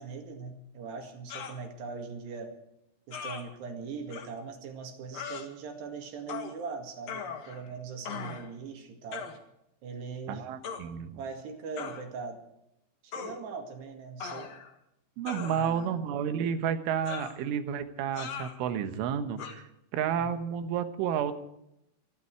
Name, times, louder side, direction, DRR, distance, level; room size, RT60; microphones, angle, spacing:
voice 1, 0.0-2.5 3.1-9.3 9.8-10.5 11.2-12.4 13.0-14.5 15.5-16.0 20.2-20.3, right 5 dB, 65° right, 4 dB, 3.9 m, -40 dB
sound 1, 1.3-1.6 3.1-3.4 4.1-4.3 5.1-5.5 6.3-6.6 7.1-7.7 8.0-8.5 9.1-9.4 10.6-10.8 11.8-12.0 13.1-13.4 14.2-14.7 15.3-15.9 17.1-17.4 18.2-18.6 19.4-19.5, left 6 dB, 60° left, 1.8 m, -39 dB
voice 2, 10.3-11.2 15.2-19.6 19.9-21.3, right 8 dB, 85° right, 10 dB, 3.7 m, -31 dB
25.5 x 11.5 x 4.7 m, 0.81 s
omnidirectional pair, 5.5 m